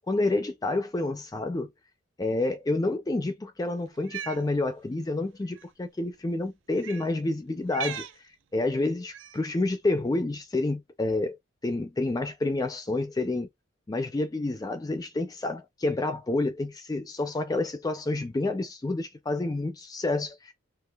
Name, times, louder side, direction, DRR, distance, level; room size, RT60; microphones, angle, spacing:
voice 1, 0.1-1.7 2.2-8.0 8.5-11.4 11.6-13.5 13.9-20.5, left 2 dB, 20° left, 0.4 m, -29 dB
Cat, 3.9-4.4 5.5-5.6 6.8-7.1 7.7-8.2 9.1-9.5, right 9 dB, 70° right, 0.4 m, -38 dB
3.7 x 2.8 x 2.2 m
head